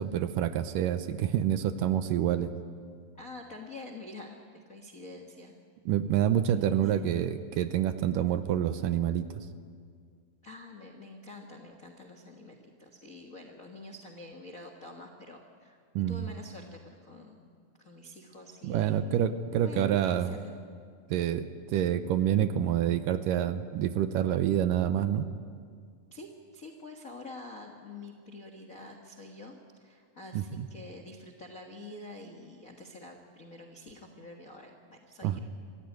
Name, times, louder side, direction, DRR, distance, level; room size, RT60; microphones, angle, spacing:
voice 1, 0.0-2.5 5.9-9.5 16.0-16.3 18.6-20.4 21.1-25.3 30.4-30.7 35.2-35.4, right 10 dB, 75° right, 11 dB, 2.2 m, -27 dB
voice 2, 3.1-4.4 4.7-5.5 6.7-7.0 10.4-15.8 16.1-17.5 17.8-19.0 19.5-20.5 26.1-35.4, left 2 dB, 55° left, 4 dB, 0.9 m, -47 dB
25.5 x 15.5 x 9.4 m, 2.1 s
omnidirectional pair, 4.2 m